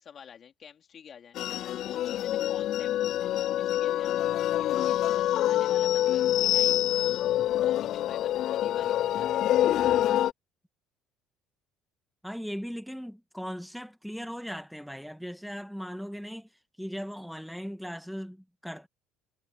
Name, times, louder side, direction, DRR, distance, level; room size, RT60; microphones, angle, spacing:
voice 1, 0.0-1.4 1.8-2.9 3.5-4.2 4.6-7.1 7.6-9.6, left 8 dB, 45° left, 4.2 m, -49 dB
sound 1, 1.4-10.3, left 12 dB, 60° left, 0.4 m, -26 dB
voice 2, 12.2-16.5 16.8-18.9, equal, ahead, 2.2 m, -38 dB
hypercardioid pair, 70°, 0 cm